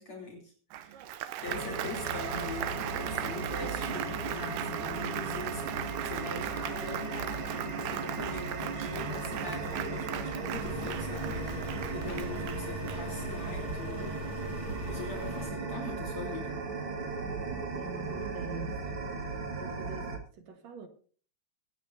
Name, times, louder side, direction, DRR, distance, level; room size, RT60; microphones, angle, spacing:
voice 1, 0.0-14.3 14.9-16.6, left 2 dB, 40° left, 3.8 m, -42 dB
Applause, 0.7-13.4, right 12 dB, 85° right, 2.5 m, -39 dB
sound 1, 1.5-20.2, right 3 dB, 40° right, 2.5 m, -36 dB
sound 2, 10.5-15.5, left 3 dB, 70° left, 3.9 m, -42 dB
voice 2, 17.7-18.8 19.6-20.9, right 5 dB, 60° right, 2.4 m, -44 dB
24.0 x 9.3 x 2.6 m
omnidirectional pair, 3.7 m